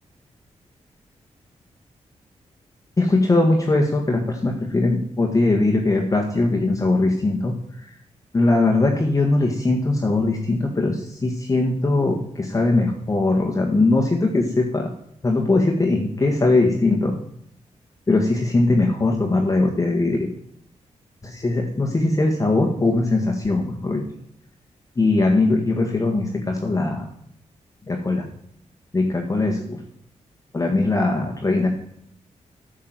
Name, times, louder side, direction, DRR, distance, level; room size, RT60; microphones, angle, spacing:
voice 1, 3.0-7.9 8.3-14.9 15.2-17.1 18.1-20.3 21.2-24.0 24.9-27.1 27.9-28.3 28.9-29.8 30.5-31.7, left 2 dB, 25° left, 1 dB, 1.6 m, -20 dB
9.5 x 6.6 x 7.6 m, 0.70 s
wide cardioid pair, 115°, 12 cm